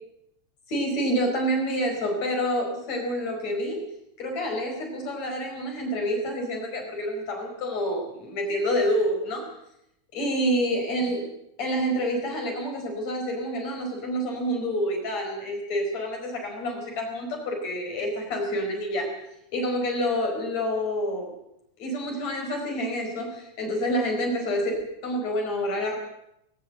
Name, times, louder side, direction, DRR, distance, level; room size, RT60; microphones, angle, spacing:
voice 1, 0.7-3.8 4.2-9.5 10.1-11.3 11.6-19.1 19.5-21.3 21.8-26.0, equal, 55° left, 2 dB, 6.0 m, -28 dB
19.5 x 18.0 x 7.8 m, 0.79 s
omnidirectional pair, 3.6 m